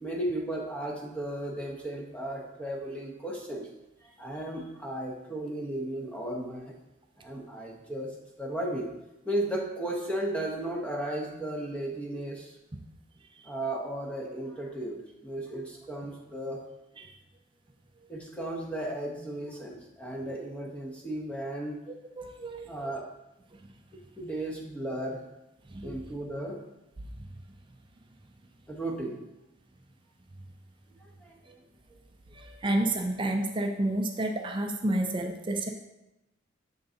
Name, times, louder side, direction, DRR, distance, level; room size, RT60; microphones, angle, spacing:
voice 1, 0.0-3.7 4.2-6.7 7.2-8.1 8.4-8.9 9.2-12.5 13.4-16.6 18.1-21.8 22.6-23.0 24.2-25.2 25.8-26.6 28.7-29.2 31.2-31.3, right 1 dB, 5° left, -1 dB, 0.9 m, -35 dB
voice 2, 22.2-22.7 25.7-25.9 32.4-35.7, right 1 dB, 25° right, 4 dB, 0.4 m, -30 dB
6.8 x 3.8 x 3.9 m, 0.93 s
head